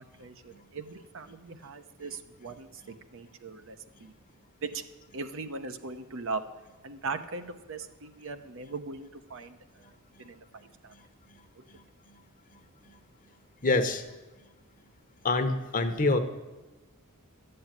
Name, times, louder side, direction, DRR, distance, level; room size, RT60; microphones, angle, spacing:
voice 1, 0.0-4.1 4.6-4.9 5.1-10.9 11.6-11.7, right 3 dB, 60° right, 9 dB, 0.9 m, -40 dB
voice 2, 13.6-14.0 15.2-16.2, left 2 dB, 40° left, 8 dB, 1.0 m, -25 dB
12.5 x 7.8 x 9.1 m, 1.1 s
head